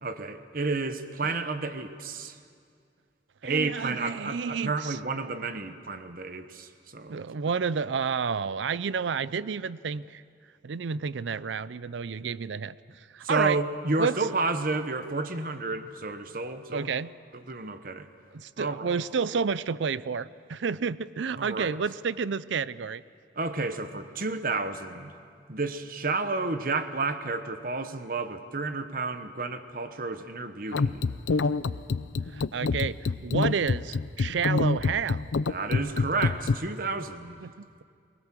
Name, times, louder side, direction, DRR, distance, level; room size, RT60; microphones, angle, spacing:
voice 1, 0.0-2.4 3.4-7.2 13.2-16.9 17.3-18.1 18.6-18.9 21.3-21.8 23.3-25.1 25.5-31.0 35.5-37.4, right 3 dB, 50° right, 9 dB, 1.0 m, -31 dB
voice 2, 3.4-5.0 7.1-10.2 10.6-12.8 13.1-13.6 14.0-14.2 16.7-17.1 18.3-23.0 32.3-35.2 37.4-37.8, right 5 dB, 75° right, 18 dB, 0.5 m, -30 dB
sound 1, 30.7-36.6, left 4 dB, 85° left, 0.5 m, -26 dB
22.5 x 20.0 x 7.5 m, 2.3 s
head